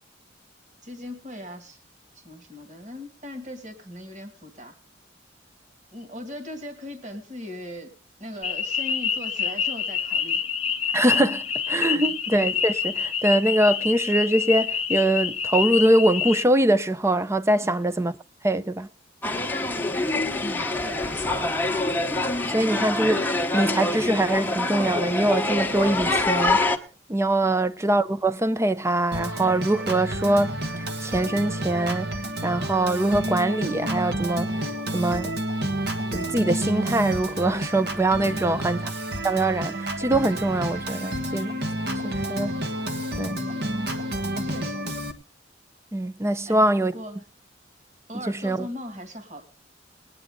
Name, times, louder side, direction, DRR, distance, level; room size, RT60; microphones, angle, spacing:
voice 1, 0.8-1.8 2.2-4.7 5.9-7.9 8.2-10.4 11.9-12.2 17.6-17.9 20.4-21.7 27.4-27.7 38.3-38.6 43.4-43.7 44.4-44.9 46.5-47.2 48.1-49.4, equal, 40° right, 2.2 m, -39 dB
sound 1, 8.4-16.5, left 7 dB, 35° left, 0.9 m, -27 dB
voice 2, 10.9-18.1 18.4-18.9 22.5-26.8 27.1-35.3 36.1-38.9 39.2-41.6 42.0-42.6 43.2-43.4 45.9-46.9 48.3-48.7, right 1 dB, 15° right, 0.5 m, -23 dB
sound 2, 19.2-26.8, left 2 dB, 10° left, 1.1 m, -25 dB
Organ, 29.1-45.1, right 1 dB, 60° right, 1.5 m, -30 dB
20.5 x 9.8 x 3.7 m
head